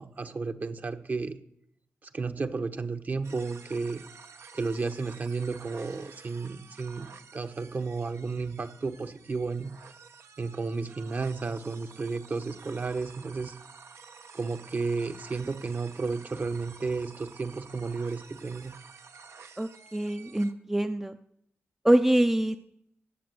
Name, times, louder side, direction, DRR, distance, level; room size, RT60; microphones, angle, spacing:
voice 1, 0.0-1.4 2.0-4.0 4.5-9.7 10.4-13.5 14.3-18.7, right 4 dB, 40° right, 8 dB, 1.0 m, -33 dB
sound 1, 3.2-20.5, right 5 dB, 80° right, 1.0 m, -51 dB
voice 2, 19.6-21.2 21.8-22.6, right 1 dB, 10° right, 8 dB, 0.5 m, -24 dB
17.0 x 7.4 x 7.7 m, 0.73 s
wide cardioid pair, 125°, 4 cm